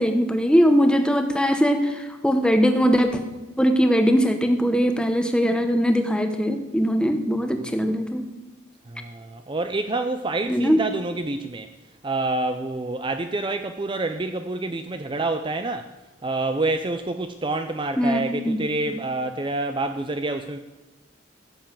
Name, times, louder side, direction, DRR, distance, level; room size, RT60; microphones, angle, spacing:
voice 1, 0.0-3.2 3.6-8.3 10.5-10.8 18.0-18.6 18.9-19.0, equal, 5° left, 6 dB, 1.0 m, -21 dB
voice 2, 8.9-11.7 12.0-15.9 16.2-20.6, right 2 dB, 25° right, 8 dB, 0.5 m, -27 dB
15.5 x 7.3 x 7.4 m, 1.1 s
head